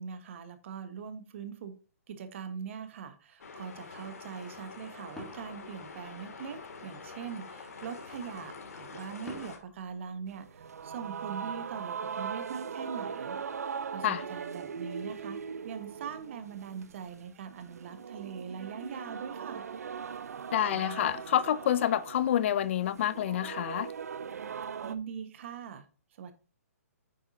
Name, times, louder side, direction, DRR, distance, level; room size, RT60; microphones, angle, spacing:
voice 1, 0.0-1.7 2.1-19.7 24.6-25.9 26.1-26.3, right 7 dB, 50° right, 1.4 m, -42 dB
sound 1, 3.4-9.6, left 4 dB, 75° left, 2.5 m, -46 dB
sound 2, 5.2-6.7 9.3-11.1, left 1 dB, 5° left, 2.0 m, -50 dB
sound 3, 10.3-25.0, right 6 dB, 75° right, 0.7 m, -40 dB
voice 2, 20.5-23.9, left 10 dB, 50° left, 0.5 m, -28 dB
9.3 x 7.3 x 2.8 m
hypercardioid pair, 140°, 8 cm